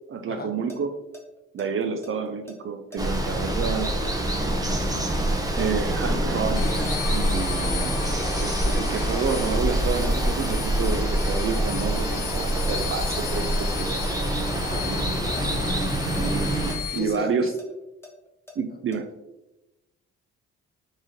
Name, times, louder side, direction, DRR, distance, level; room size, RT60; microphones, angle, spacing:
voice 1, 0.1-1.0 1.5-3.9 5.6-7.9 8.4-14.0 14.5-15.0 16.9-17.5 18.6-19.1, right 6 dB, 40° right, 7 dB, 0.5 m, -29 dB
sound 1, 0.7-6.6 6.9-9.3 9.6-9.7 10.0-10.6 10.9-14.1 14.5-14.6 14.9-15.0 15.4-15.5 15.8-18.6 18.9-19.0, left 3 dB, 10° left, 1.1 m, -45 dB
Water, 3.0-16.8, right 1 dB, 10° right, 0.7 m, -25 dB
sound 2, 6.6-17.0, left 9 dB, 90° left, 0.5 m, -36 dB
voice 2, 14.7-15.7 16.9-17.5, left 3 dB, 30° left, 5 dB, 0.8 m, -35 dB
4.5 x 2.9 x 3.0 m, 0.99 s
supercardioid pair, 55°, 31 cm